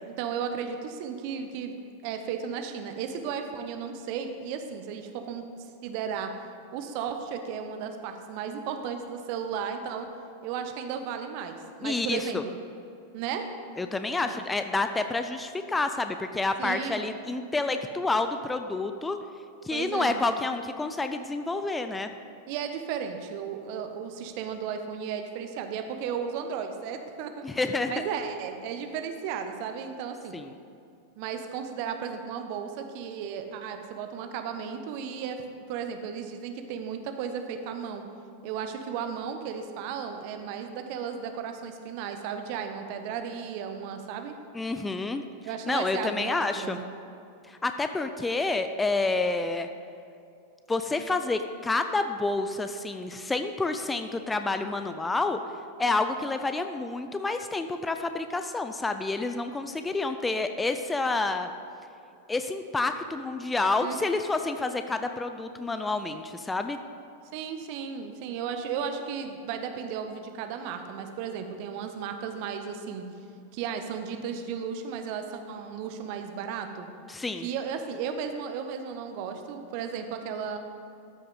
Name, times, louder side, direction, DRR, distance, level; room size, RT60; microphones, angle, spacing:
voice 1, 0.0-1.7 2.0-5.4 5.8-6.3 6.7-10.1 10.4-12.5 13.1-13.5 14.2-14.3 16.6-17.1 19.7-20.2 22.5-27.4 27.9-30.4 31.2-38.1 38.4-44.3 45.4-46.8 63.8-64.0 67.3-73.0 73.5-76.9 77.4-80.6, right 7 dB, 45° right, 6 dB, 0.7 m, -34 dB
voice 2, 11.8-12.4 13.8-19.2 19.6-22.1 27.4-27.9 30.3-30.5 44.5-45.2 45.7-46.8 47.5-49.7 50.7-55.4 55.8-61.5 62.3-66.8 77.1-77.5, left 3 dB, 10° left, 8 dB, 0.4 m, -29 dB
13.0 x 5.5 x 3.8 m, 2.6 s
figure-of-eight pair, 90°, 0 cm